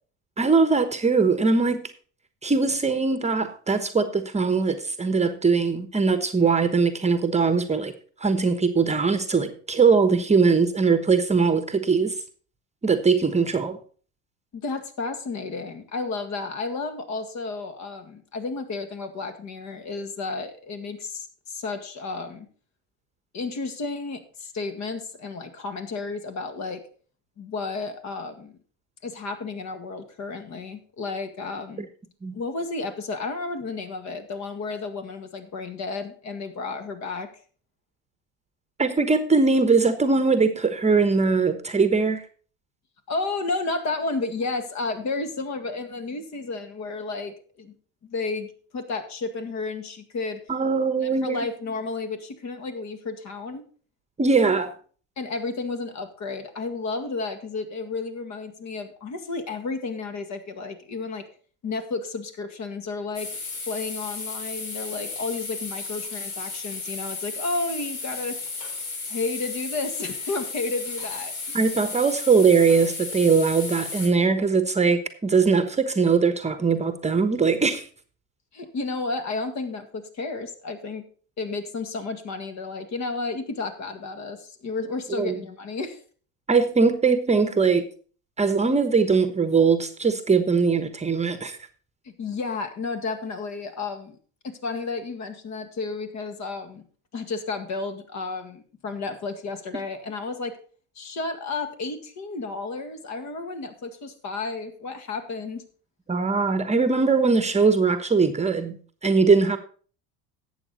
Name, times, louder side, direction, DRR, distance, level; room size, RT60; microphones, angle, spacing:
voice 1, 0.4-1.8 2.4-7.9 8.2-12.1 12.8-13.8 32.2-32.4 38.8-42.2 50.5-51.5 54.2-54.7 71.5-77.9 85.1-85.4 86.5-87.8 88.4-91.6 106.1-109.6, right 4 dB, 20° right, 1.0 m, -21 dB
voice 2, 14.5-22.5 23.3-26.8 27.4-28.6 29.0-31.8 32.3-37.3 43.1-47.7 48.0-50.4 51.0-53.7 55.2-61.3 61.6-63.4 63.7-68.4 69.1-71.3 78.5-81.1 81.4-86.0 92.1-94.2 94.4-96.9 97.1-100.6 101.0-105.7, left 3 dB, 45° left, 2.0 m, -32 dB
sound 1, 63.1-74.1, left 3 dB, 75° left, 3.2 m, -34 dB
12.0 x 8.1 x 4.1 m
supercardioid pair, 90°, 37 cm